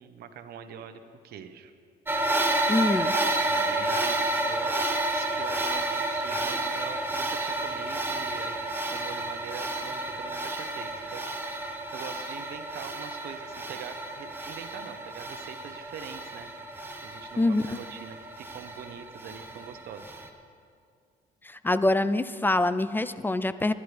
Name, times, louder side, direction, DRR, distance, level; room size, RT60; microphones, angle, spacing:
voice 1, 0.0-1.7 3.4-4.8 5.1-8.5 8.9-11.5 11.9-16.5 17.0-20.1, right 7 dB, 65° right, 8 dB, 1.0 m, -43 dB
sound 1, 2.1-20.3, right 2 dB, 10° right, 1.1 m, -31 dB
voice 2, 2.7-3.2 17.4-17.8 21.4-23.7, left 2 dB, 10° left, 14 dB, 0.3 m, -25 dB
20.0 x 11.5 x 3.4 m, 2.2 s
cardioid pair, 110°, 17 cm